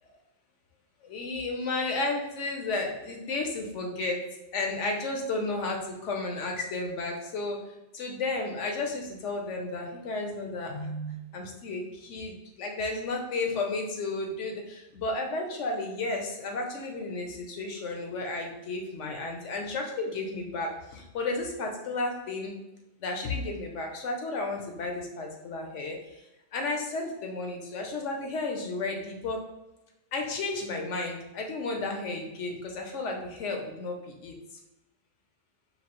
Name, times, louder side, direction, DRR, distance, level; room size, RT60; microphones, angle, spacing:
voice 1, 1.0-4.2 4.5-7.6 7.9-22.6 23.0-26.2 26.5-29.4 30.1-34.4, left 3 dB, 80° left, 2 dB, 1.1 m, -33 dB
5.0 x 2.8 x 3.0 m, 0.95 s
omnidirectional pair, 1.2 m